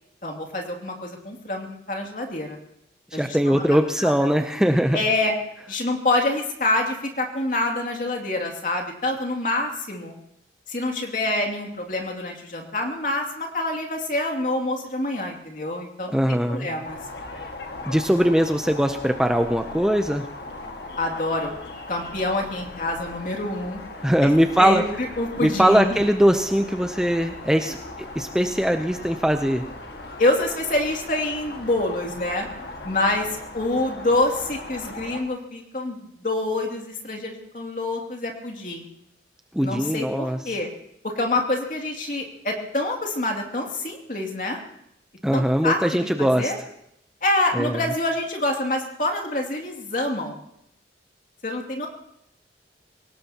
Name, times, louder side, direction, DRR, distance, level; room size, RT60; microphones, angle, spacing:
voice 1, 0.2-2.6 3.1-3.6 4.0-4.1 4.9-5.3 5.7-10.2 10.7-17.0 21.0-21.6 21.9-23.8 24.2-24.3 24.6-26.0 27.6-27.7 30.2-32.5 32.8-38.9 39.6-40.7 41.0-44.6 45.3-46.6 47.2-50.4 51.4-51.9, left 2 dB, 50° left, 2 dB, 2.6 m, -26 dB
voice 2, 3.1-5.0 16.1-16.7 17.9-20.2 24.0-24.8 25.4-29.6 39.5-40.4 45.2-46.5 47.5-47.8, equal, 5° right, 6 dB, 0.6 m, -21 dB
sound 1, 16.8-35.2, left 2 dB, 65° left, 1.8 m, -38 dB
24.5 x 18.0 x 2.9 m, 0.76 s
head